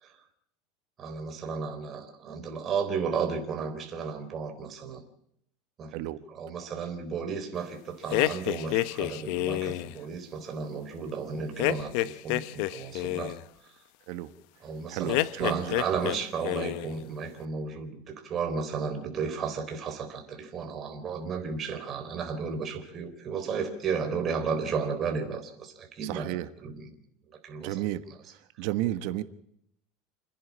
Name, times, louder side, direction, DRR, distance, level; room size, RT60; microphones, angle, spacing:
voice 1, 1.0-5.0 5.8-6.0 6.3-13.4 14.6-26.9 27.4-27.8, right 5 dB, 30° right, 6 dB, 3.8 m, -33 dB
sound 1, 8.1-10.0 11.6-13.4 15.1-16.2 16.4-17.0, left 17 dB, 65° left, 0.7 m, -29 dB
voice 2, 14.9-16.0 26.0-26.5 27.6-28.0 28.3-29.2, right 15 dB, 65° right, 13 dB, 1.3 m, -33 dB
28.5 x 10.5 x 8.7 m, 0.73 s
supercardioid pair, 135°, 0 cm